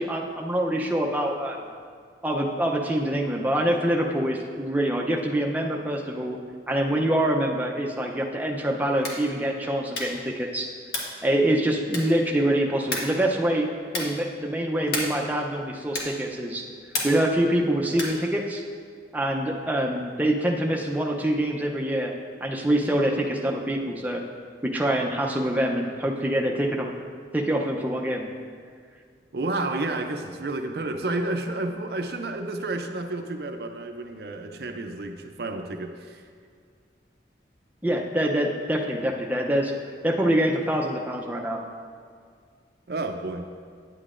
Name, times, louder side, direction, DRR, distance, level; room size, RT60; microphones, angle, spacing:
voice 1, 0.0-1.6 2.2-6.4 6.7-10.7 11.2-13.7 13.9-16.7 17.0-18.6 19.1-22.1 22.4-24.2 24.6-26.9 27.3-28.3 37.8-39.7 40.0-41.6, right 1 dB, 10° right, 0 dB, 0.5 m, -25 dB
sound 1, 8.9-9.3 9.9-10.3 10.9-11.2 11.9-12.3 12.9-13.2 13.9-14.2 14.9-15.3 15.9-16.3 16.9-17.3 17.9-18.3, left 2 dB, 65° left, 1.3 m, -32 dB
voice 2, 29.3-36.2 42.9-43.5, right 2 dB, 60° right, 5 dB, 0.5 m, -31 dB
9.7 x 8.3 x 2.5 m, 2.1 s
head